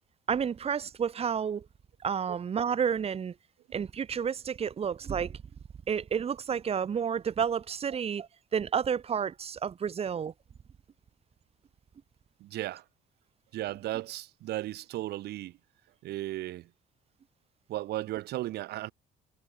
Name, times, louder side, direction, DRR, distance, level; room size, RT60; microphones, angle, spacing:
voice 1, 0.3-1.6 2.0-3.3 3.7-5.4 5.9-10.3, right 7 dB, 35° right, 1.5 m, -30 dB
voice 2, 12.4-12.8 13.5-15.5 16.0-16.7 17.7-18.9, right 15 dB, 75° right, 2.0 m, -35 dB
cardioid pair, 110°, 17 cm